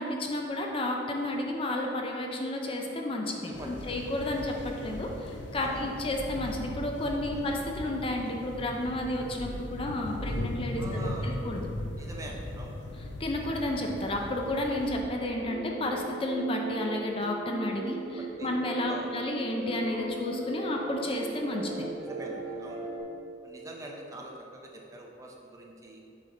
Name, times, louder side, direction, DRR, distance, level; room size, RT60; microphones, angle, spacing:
voice 1, 0.0-11.7 13.2-21.9, left 1 dB, 30° left, 1 dB, 0.5 m, -32 dB
sound 1, 3.5-15.0, left 1 dB, 75° left, 0.6 m, -38 dB
voice 2, 10.8-11.4 12.0-12.8 18.2-18.5 18.9-19.1 22.0-22.9 23.4-26.0, right 1 dB, 15° right, -1 dB, 0.6 m, -43 dB
sound 2, 15.4-23.0, right 2 dB, 80° right, 1.1 m, -38 dB
6.4 x 5.7 x 3.8 m, 2.7 s
head